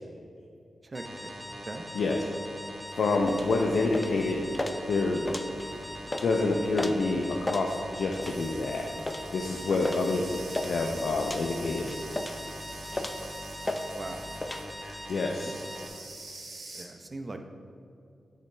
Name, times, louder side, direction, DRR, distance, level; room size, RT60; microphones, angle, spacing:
voice 1, 0.8-1.3 1.7-1.8 9.7-10.0 13.9-14.2 15.2-15.6 16.7-17.4, right 2 dB, 40° right, 6 dB, 0.7 m, -41 dB
sound 1, 0.9-15.9, equal, 5° left, 1.4 m, -42 dB
voice 2, 3.0-4.4 4.9-5.2 6.2-8.9 9.3-11.9 14.8-15.5, left 3 dB, 80° left, 1 dB, 0.6 m, -27 dB
sound 2, 3.2-14.6, left 1 dB, 25° left, 0.6 m, -37 dB
sound 3, 8.2-16.8, right 3 dB, 70° right, 1.5 m, -47 dB
8.2 x 6.7 x 3.4 m, 2.6 s
cardioid pair, 60°, 0 cm